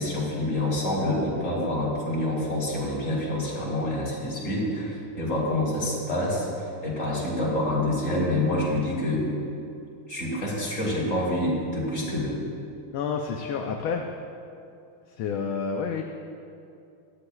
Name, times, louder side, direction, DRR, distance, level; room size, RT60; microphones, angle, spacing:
voice 1, 0.0-6.5 6.8-9.2 10.1-12.4, left 1 dB, 35° left, -6 dB, 3.5 m, -27 dB
voice 2, 12.9-14.1 15.2-16.0, left 5 dB, 75° left, 3 dB, 1.5 m, -29 dB
18.5 x 13.0 x 2.3 m, 2.6 s
omnidirectional pair, 2.4 m